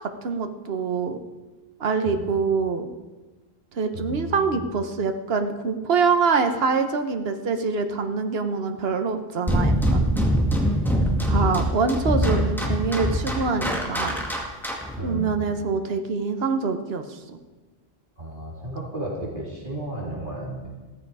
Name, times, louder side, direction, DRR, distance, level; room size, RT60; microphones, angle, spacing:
voice 1, 0.2-1.2 1.8-2.9 3.7-10.2 11.3-14.2 15.0-17.4, right 5 dB, 70° right, 7 dB, 1.3 m, -25 dB
voice 2, 3.9-4.5 11.4-11.8 15.0-15.4 18.2-20.7, right 1 dB, 55° right, -4 dB, 3.8 m, -33 dB
sound 1, 9.5-15.0, equal, ahead, 2.1 m, -23 dB
16.0 x 14.5 x 4.9 m, 1.3 s
omnidirectional pair, 1.0 m